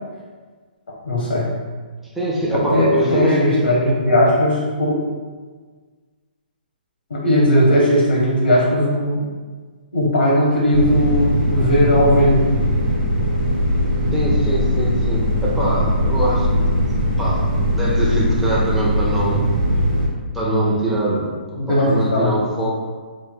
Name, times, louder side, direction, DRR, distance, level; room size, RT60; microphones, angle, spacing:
voice 1, 1.0-1.5 2.5-5.0 7.1-9.2 9.9-12.5 21.6-22.4, equal, 90° left, -4 dB, 0.8 m, -17 dB
voice 2, 2.1-3.7 14.1-16.5 17.2-17.5 17.7-19.5 20.3-21.3 21.7-22.8, right 1 dB, 5° right, -6 dB, 0.6 m, -22 dB
sound 1, 10.7-20.1, equal, 25° right, 1.1 m, -20 dB
3.1 x 2.2 x 3.7 m, 1.5 s
hypercardioid pair, 145°, 5 cm